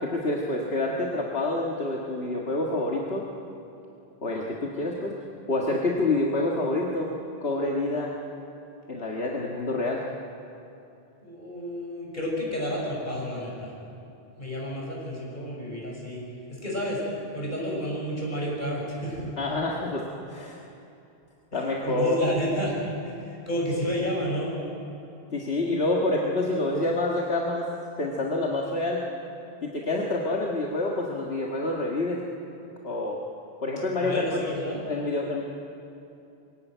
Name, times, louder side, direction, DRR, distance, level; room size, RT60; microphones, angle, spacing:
voice 1, 0.0-3.2 4.2-5.2 5.5-7.1 7.4-8.1 8.9-10.0 19.4-20.6 21.5-22.2 25.3-27.7 28.0-29.0 29.6-32.2 32.8-33.2 33.6-34.4 34.7-35.4, left 2 dB, 80° left, -2 dB, 2.0 m, -27 dB
voice 2, 11.2-13.7 14.4-16.2 16.6-17.0 17.3-19.2 21.5-22.8 23.0-24.5 34.0-34.8, equal, 50° left, -3 dB, 6.6 m, -31 dB
22.0 x 17.0 x 9.2 m, 2.8 s
omnidirectional pair, 1.0 m